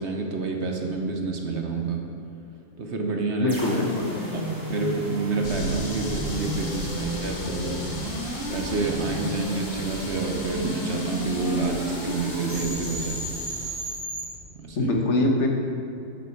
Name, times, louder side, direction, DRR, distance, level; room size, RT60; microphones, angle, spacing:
voice 1, 0.0-2.0 2.8-3.6 4.3-4.4 4.7-7.8 8.5-13.2 14.6-14.9, right 3 dB, 60° right, 2 dB, 1.2 m, -28 dB
voice 2, 3.4-4.1 14.8-15.5, left 2 dB, 65° left, 1 dB, 1.6 m, -23 dB
sound 1, 3.5-14.3, right 1 dB, 15° right, 2.1 m, -33 dB
sound 2, 5.4-14.0, left 2 dB, 40° left, 1.3 m, -37 dB
11.5 x 7.8 x 4.5 m, 2.8 s
omnidirectional pair, 1.3 m